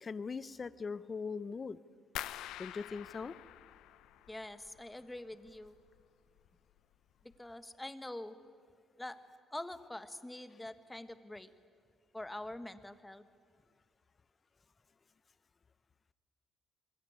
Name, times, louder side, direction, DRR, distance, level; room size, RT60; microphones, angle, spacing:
voice 1, 0.0-1.8 2.6-3.4, left 5 dB, 35° left, 16 dB, 0.8 m, -40 dB
sound 1, 2.2-5.0 5.3-6.0 6.4-6.8 7.2-7.4, left 13 dB, 90° left, 0.7 m, -46 dB
voice 2, 4.3-5.8 7.2-8.3 9.0-9.2 9.5-11.5 12.1-13.2, left 1 dB, 10° left, 11 dB, 1.5 m, -45 dB
26.5 x 22.5 x 9.6 m, 2.1 s
cardioid pair, 90°, 0 cm